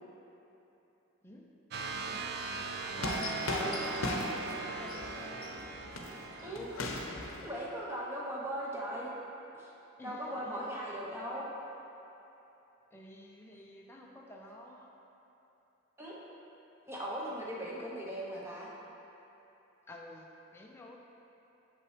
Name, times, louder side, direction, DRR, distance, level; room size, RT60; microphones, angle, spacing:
voice 1, 1.2-1.6 2.0-2.4 4.1-5.7 10.0-10.7 12.9-14.9 19.9-21.0, left 1 dB, 10° left, -2 dB, 0.4 m, -51 dB
sound 1, 1.7-7.2, right 4 dB, 55° right, 0.4 m, -39 dB
sound 2, 2.5-7.5, left 2 dB, 90° left, 0.7 m, -38 dB
voice 2, 3.5-4.0 6.4-6.7 7.4-9.1 9.5-9.7 10.0-11.5 16.0-16.2 16.9-18.7, equal, 10° right, -6 dB, 0.9 m, -39 dB
6.9 x 5.7 x 3.3 m, 3.0 s
head